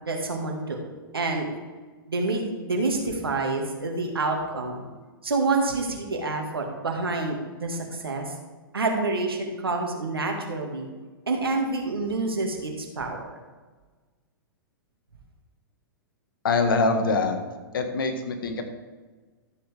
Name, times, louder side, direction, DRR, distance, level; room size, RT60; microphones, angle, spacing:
voice 1, 0.0-0.8 1.1-1.5 2.1-4.8 5.2-8.3 8.7-10.9 11.3-13.3, right 3 dB, 80° right, 2 dB, 2.0 m, -27 dB
voice 2, 16.4-17.4 17.7-18.6, left 3 dB, 65° left, 5 dB, 1.6 m, -24 dB
13.0 x 7.6 x 3.5 m, 1.3 s
figure-of-eight pair, 110°, 12 cm